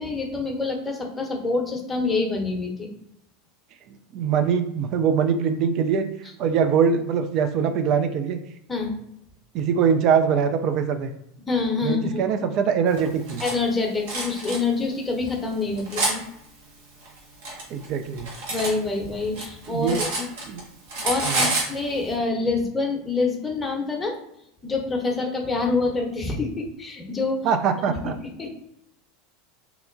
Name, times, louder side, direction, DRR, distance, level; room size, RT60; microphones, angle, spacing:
voice 1, 0.0-2.9 8.7-9.0 11.5-12.2 13.4-16.2 18.5-20.3 21.0-24.2 24.6-27.5 28.4-28.5, left 3 dB, 15° left, 0 dB, 0.7 m, -26 dB
voice 2, 3.9-8.4 9.5-11.1 11.8-13.4 17.7-18.3 19.7-20.0 20.5-20.6 21.2-21.5 27.4-28.2, right 7 dB, 45° right, 8 dB, 0.3 m, -23 dB
Cutlery silverware, 13.0-13.5 14.1-14.6 15.3-16.2 17.0-18.8 19.1-20.6 20.9-21.7, right 2 dB, 65° right, 0.9 m, -28 dB
2.9 x 2.1 x 2.5 m, 0.79 s
figure-of-eight pair, 80°, 0 cm